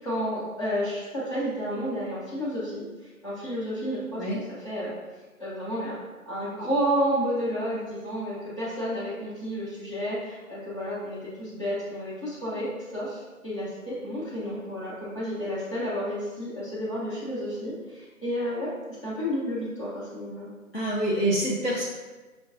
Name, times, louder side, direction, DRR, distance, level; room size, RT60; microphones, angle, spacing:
voice 1, 0.0-4.9 5.4-6.0 6.2-18.7 19.0-20.5, equal, 20° left, -10 dB, 1.0 m, -31 dB
voice 2, 20.7-21.8, right 1 dB, 40° left, -7 dB, 0.7 m, -26 dB
5.7 x 2.3 x 3.9 m, 1.2 s
figure-of-eight pair, 165°, 45 cm